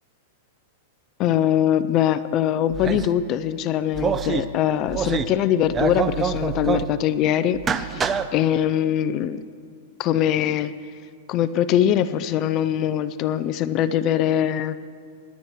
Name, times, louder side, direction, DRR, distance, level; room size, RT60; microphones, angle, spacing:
voice 1, 1.2-9.4 10.0-10.7 11.3-14.8, left 10 dB, 40° left, 14 dB, 0.5 m, -22 dB
sound 1, 2.7-3.2 3.9-4.4 4.9-5.4 5.6-6.9 7.5-8.3, right 6 dB, 20° right, 0.6 m, -25 dB
28.0 x 11.5 x 3.1 m, 2.3 s
hypercardioid pair, 130°, 0 cm